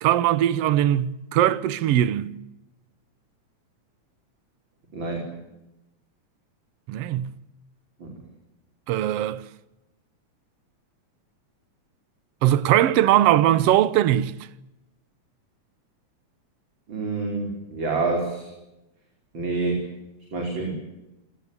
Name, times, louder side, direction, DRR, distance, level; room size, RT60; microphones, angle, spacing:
voice 1, 0.0-2.3 6.9-7.3 8.9-9.4 12.4-14.3, right 12 dB, 65° right, 1.9 m, -20 dB
voice 2, 4.9-5.4 8.0-8.1 16.9-18.5 19.3-19.9 20.3-20.7, right 3 dB, 40° right, 5.4 m, -27 dB
28.0 x 18.5 x 8.5 m
omnidirectional pair, 3.3 m